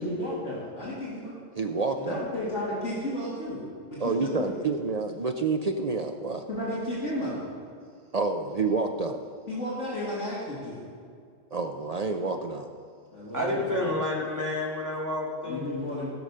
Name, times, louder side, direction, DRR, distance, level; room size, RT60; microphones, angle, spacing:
voice 1, 0.0-1.4 2.0-4.6 6.5-7.5 9.5-10.8 13.1-13.9 15.4-16.1, left 1 dB, 70° left, -7 dB, 2.5 m, -33 dB
voice 2, 1.6-2.2 4.0-6.4 8.1-9.2 11.5-12.7, right 4 dB, 55° right, 5 dB, 0.4 m, -28 dB
voice 3, 13.3-15.7, left 1 dB, 15° right, -4 dB, 2.1 m, -29 dB
15.5 x 6.4 x 5.5 m, 2.2 s
omnidirectional pair, 1.3 m